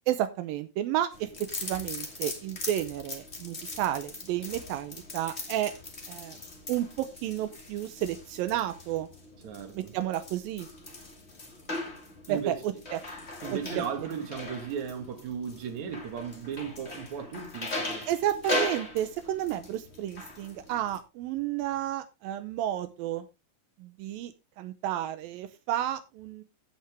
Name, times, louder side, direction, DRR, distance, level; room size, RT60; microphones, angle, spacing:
voice 1, 0.1-5.7 6.1-6.4 6.7-9.1 9.7-10.7 12.3-13.0 13.5-13.6 18.1-23.3 23.8-26.4, right 12 dB, 85° right, 2.5 m, -31 dB
sound 1, 1.1-21.0, left 2 dB, 25° left, 1.8 m, -39 dB
voice 2, 9.4-10.0 12.3-12.6 13.4-18.1, right 7 dB, 55° right, 2.9 m, -36 dB
16.0 x 5.8 x 3.4 m
omnidirectional pair, 4.1 m